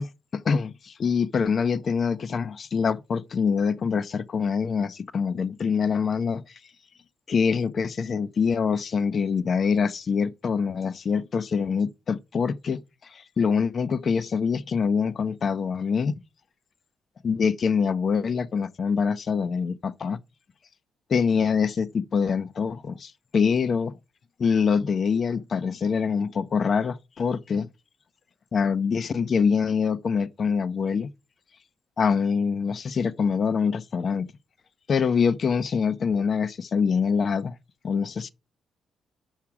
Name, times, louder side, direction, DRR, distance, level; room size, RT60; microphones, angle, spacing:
voice 1, 0.0-6.6 7.3-16.2 17.2-20.2 21.1-23.9 24.4-27.7 28.5-31.1 32.0-34.3 34.9-37.6 37.8-38.3, left 6 dB, 45° left, 0.6 m, -25 dB
7.3 x 5.8 x 4.8 m
cardioid pair, 90°, 0 cm